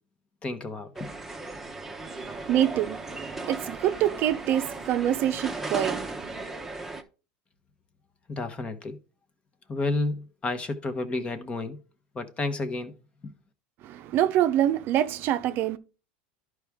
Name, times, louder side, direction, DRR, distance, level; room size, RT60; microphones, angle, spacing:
voice 1, 0.4-1.1 8.3-9.0 9.7-11.8 12.1-12.9 13.2-13.3, left 2 dB, 25° left, 1.0 m, -31 dB
sound 1, 1.0-7.0, right 2 dB, 5° right, 0.9 m, -36 dB
voice 2, 2.0-6.5 13.8-15.8, right 11 dB, 50° right, 0.6 m, -26 dB
11.5 x 4.8 x 3.5 m
supercardioid pair, 125°, 5 cm